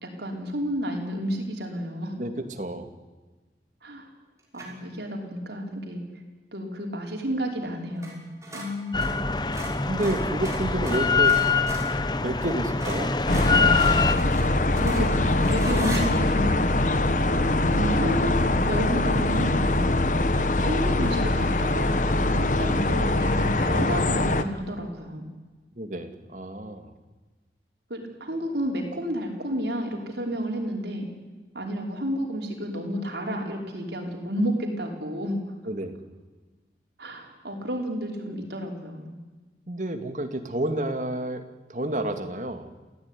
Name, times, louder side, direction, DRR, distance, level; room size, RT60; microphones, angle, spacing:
voice 1, 0.0-2.2 3.8-4.1 4.5-6.0 6.5-8.3 8.5-9.2 14.5-16.7 17.7-18.4 18.7-20.0 20.6-25.3 27.9-31.1 31.5-35.4 37.0-39.2, equal, 75° right, 1 dB, 5.1 m, -31 dB
voice 2, 2.2-2.9 9.9-11.4 12.2-13.2 25.8-26.9 35.7-36.0 39.7-41.4 41.7-42.7, right 1 dB, 45° right, 6 dB, 2.4 m, -30 dB
sound 1, 4.5-4.9 8.0-8.2 8.4-12.0 12.4-12.5 12.8-16.0, right 1 dB, 15° right, 5.5 m, -38 dB
Drill, 8.9-14.1, left 4 dB, 25° left, 0.9 m, -24 dB
sound 2, 13.3-24.4, left 2 dB, 45° left, 1.2 m, -23 dB
28.0 x 16.5 x 10.0 m, 1.3 s
head